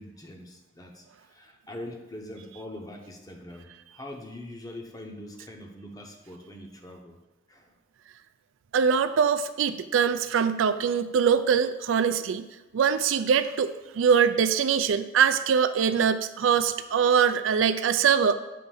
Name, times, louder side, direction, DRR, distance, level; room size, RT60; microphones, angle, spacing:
voice 1, 0.0-7.2 7.5-7.7, left 1 dB, 20° left, 2 dB, 0.7 m, -43 dB
voice 2, 8.7-12.5 12.7-18.3, right 7 dB, 85° right, 11 dB, 0.4 m, -23 dB
7.4 x 2.6 x 5.5 m, 1.1 s
head